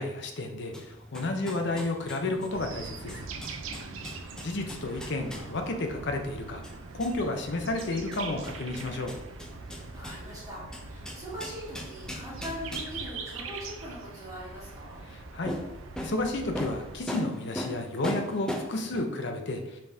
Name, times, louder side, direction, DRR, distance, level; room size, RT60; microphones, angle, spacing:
voice 1, 0.0-3.3 4.4-6.6 6.9-9.1 15.1-15.5 16.0-19.8, left 2 dB, 60° left, 4 dB, 0.6 m, -32 dB
sound 1, 0.6-19.0, equal, 5° left, 0.4 m, -41 dB
sound 2, 2.5-17.1, right 4 dB, 85° right, 0.5 m, -42 dB
voice 2, 3.6-4.2 9.7-15.0, equal, 15° right, -9 dB, 1.6 m, -42 dB
5.3 x 3.4 x 2.7 m, 0.90 s
head